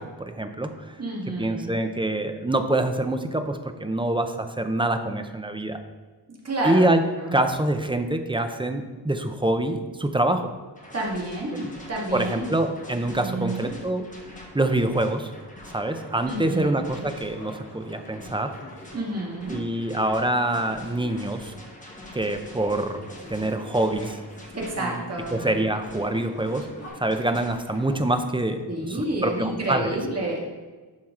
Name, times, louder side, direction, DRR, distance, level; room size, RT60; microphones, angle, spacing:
voice 1, 0.0-0.9 1.4-5.8 6.6-7.0 7.3-10.5 12.1-14.1 14.5-15.3 15.7-18.5 19.5-21.5 22.1-23.0 23.3-24.2 24.8-25.0 25.3-26.7 27.0-28.6 28.9-29.9, right 1 dB, 10° right, 7 dB, 0.5 m, -25 dB
voice 2, 1.0-1.8 6.4-6.9 7.2-7.5 10.9-12.6 13.2-13.7 16.3-16.7 17.0-17.1 18.9-19.6 24.5-25.4 28.7-30.5, right 1 dB, 35° right, -3 dB, 1.9 m, -29 dB
sound 1, 10.7-28.2, left 1 dB, 20° left, 1.3 m, -45 dB
sound 2, 16.9-22.1 22.5-26.9, left 1 dB, 35° left, 2.5 m, -48 dB
11.5 x 4.6 x 3.7 m, 1.3 s
wide cardioid pair, 155°, 42 cm